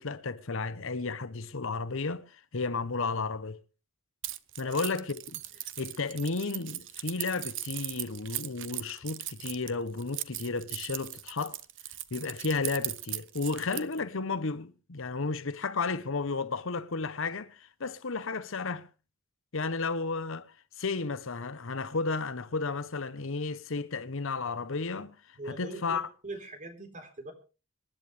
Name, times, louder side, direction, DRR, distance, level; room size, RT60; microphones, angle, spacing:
voice 1, 0.0-3.6 4.6-5.4 5.8-11.6 12.1-18.9 19.5-26.1, left 4 dB, 70° left, 0.9 m, -33 dB
Keys jangling, 4.2-14.0, right 14 dB, 65° right, 0.8 m, -38 dB
voice 2, 25.4-27.3, right 2 dB, 40° right, 3.8 m, -42 dB
26.0 x 10.5 x 3.3 m
head